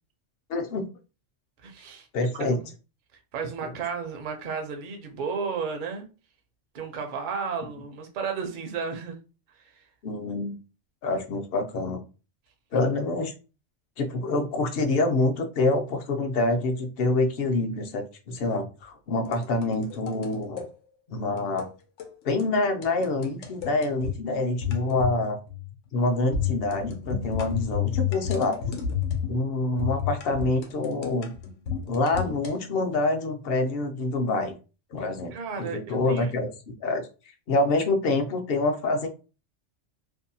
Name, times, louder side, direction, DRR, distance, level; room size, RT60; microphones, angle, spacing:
voice 1, 0.5-0.8 2.1-2.6 3.6-3.7 10.0-10.6 11.0-12.0 12.7-13.3 14.0-20.7 21.1-21.7 22.2-25.4 25.9-28.6 29.3-31.3 31.9-34.5 34.9-37.0 37.5-39.1, left 2 dB, 60° left, 5 dB, 0.7 m, -26 dB
voice 2, 1.6-2.5 3.3-6.0 6.7-9.2 9.6-9.8 35.3-36.3, right 5 dB, 55° right, 4 dB, 0.6 m, -33 dB
sound 1, 19.3-20.7 21.4-21.7 22.0-22.1 22.4-22.5 22.8-24.2 24.6-25.2 25.5-25.7 26.3-29.4 29.8-32.5, left 8 dB, 90° left, 1.0 m, -31 dB
2.7 x 2.1 x 2.6 m, 0.33 s
omnidirectional pair, 1.2 m